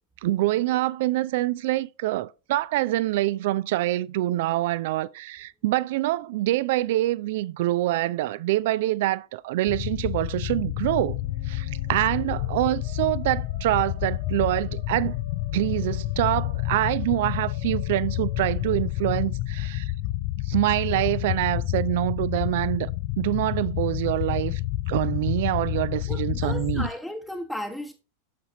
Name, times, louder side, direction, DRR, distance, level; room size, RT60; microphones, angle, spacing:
voice 1, 0.2-11.2 11.5-15.1 15.5-19.9 20.5-22.9 23.2-24.6 24.9-26.9, right 16 dB, 50° right, 0.4 m, -25 dB
sound 1, 9.7-26.9, left 15 dB, 45° left, 0.4 m, -29 dB
Musical instrument, 10.9-19.7, left 1 dB, 80° right, 2.3 m, -50 dB
voice 2, 26.1-27.9, left 1 dB, ahead, 1.0 m, -35 dB
9.4 x 7.0 x 2.9 m
figure-of-eight pair, 90°, 0 cm